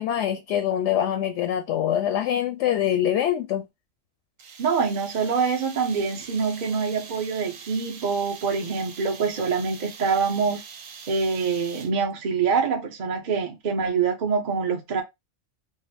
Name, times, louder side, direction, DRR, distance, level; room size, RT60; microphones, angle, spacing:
voice 1, 0.0-3.6, left 10 dB, 70° left, 0.8 m, -24 dB
sound 1, 4.4-12.1, right 6 dB, 80° right, 1.2 m, -43 dB
voice 2, 4.6-10.6 11.1-15.0, right 5 dB, 40° right, 0.8 m, -25 dB
3.6 x 2.0 x 4.3 m
omnidirectional pair, 1.4 m